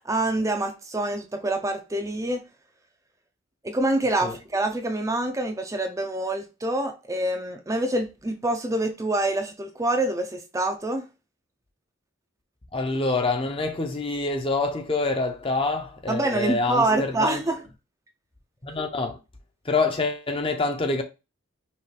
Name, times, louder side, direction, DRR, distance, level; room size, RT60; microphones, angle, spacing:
voice 1, 0.0-2.4 3.6-11.1 16.1-17.6, right 2 dB, 15° right, 0.5 m, -26 dB
voice 2, 12.7-17.4 18.6-19.2 19.6-21.0, left 3 dB, 25° left, 0.7 m, -26 dB
5.6 x 2.5 x 3.3 m
head